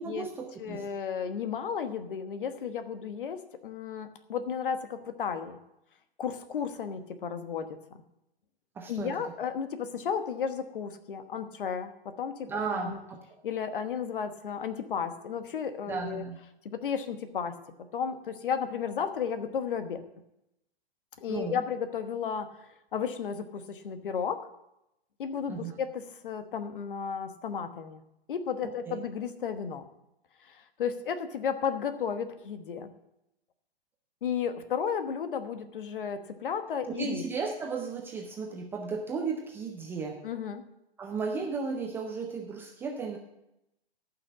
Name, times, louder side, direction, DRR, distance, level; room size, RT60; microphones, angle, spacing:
voice 1, 0.0-0.8 8.8-9.1 12.5-13.2 15.9-16.4 21.3-21.6 25.5-25.7 28.9-29.0 36.9-40.2 41.0-43.2, right 5 dB, 5° right, 2 dB, 0.4 m, -34 dB
voice 2, 0.6-5.6 6.2-7.7 8.9-12.5 12.7-13.0 13.4-16.2 16.6-17.6 17.9-20.0 21.2-24.5 25.2-28.0 28.3-29.8 30.4-32.9 34.2-37.2 40.2-40.6, left 7 dB, 55° left, 10 dB, 1.2 m, -33 dB
14.0 x 6.0 x 7.1 m, 0.86 s
figure-of-eight pair, 130°, 31 cm